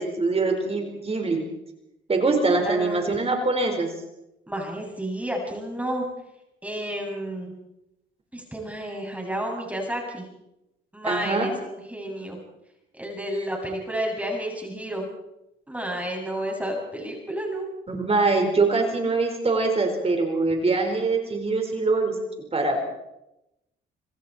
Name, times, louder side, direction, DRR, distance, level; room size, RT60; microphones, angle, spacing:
voice 1, 0.0-1.4 2.1-3.9 11.0-11.5 17.9-22.1 22.5-22.8, right 3 dB, 30° right, 3 dB, 4.8 m, -23 dB
voice 2, 2.6-3.2 4.5-6.1 6.6-7.5 8.3-10.3 10.9-12.4 13.0-15.1 15.7-17.7, right 1 dB, 5° right, 0 dB, 7.2 m, -31 dB
27.5 x 25.5 x 4.5 m, 0.88 s
cardioid pair, 90°, 20 cm